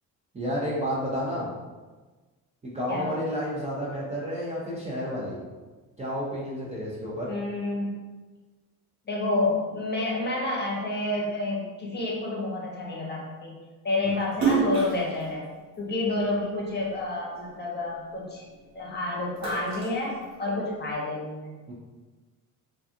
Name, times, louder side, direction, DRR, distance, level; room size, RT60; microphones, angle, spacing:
voice 1, 0.3-1.5 2.6-5.4 6.0-7.3 21.7-21.8, equal, 15° right, -7 dB, 0.6 m, -31 dB
voice 2, 7.3-8.0 9.0-13.6 13.8-15.4 15.8-18.4 18.7-21.5, left 2 dB, 25° left, -4 dB, 0.9 m, -29 dB
Splash splatter, 14.3-16.9 17.3-18.8 19.1-20.9, right 5 dB, 40° right, 1.1 m, -30 dB
2.4 x 2.3 x 2.7 m, 1.3 s
supercardioid pair, 70°, 41 cm